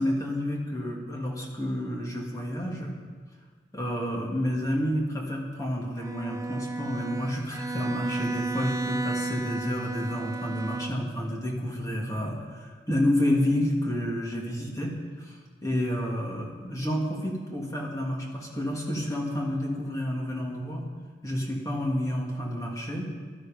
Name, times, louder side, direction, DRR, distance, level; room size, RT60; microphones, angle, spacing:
voice 1, 0.0-2.9 3.7-15.4 15.6-20.9 21.2-23.1, equal, 20° left, -2 dB, 2.8 m, -30 dB
Bowed string instrument, 6.0-11.3, right 2 dB, 15° right, 0.6 m, -33 dB
17.0 x 13.0 x 5.4 m, 1.5 s
head